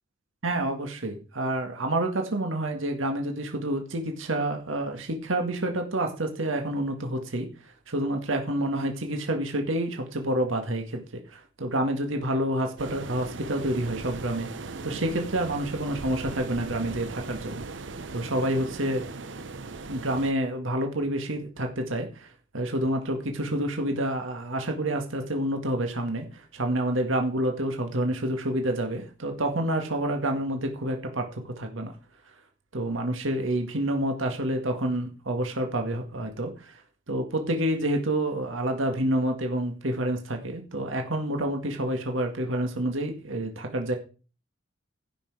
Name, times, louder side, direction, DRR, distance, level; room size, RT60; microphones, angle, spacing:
voice 1, 0.4-7.5 7.9-17.6 18.1-19.0 19.9-31.9 32.7-36.8 37.1-44.0, right 1 dB, 85° right, 4 dB, 1.9 m, -28 dB
sound 1, 12.8-20.3, right 3 dB, 65° right, 0.8 m, -38 dB
15.5 x 6.0 x 4.9 m, 0.36 s
head